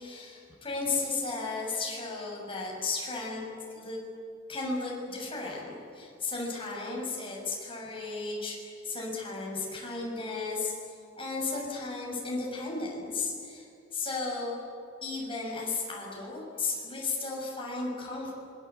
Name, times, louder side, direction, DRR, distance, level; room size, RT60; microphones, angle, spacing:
voice 1, 0.0-3.4 3.7-4.0 4.5-13.7 13.9-14.6 15.0-18.3, left 3 dB, 25° left, -2 dB, 7.2 m, -34 dB
26.5 x 24.0 x 8.4 m, 2.6 s
head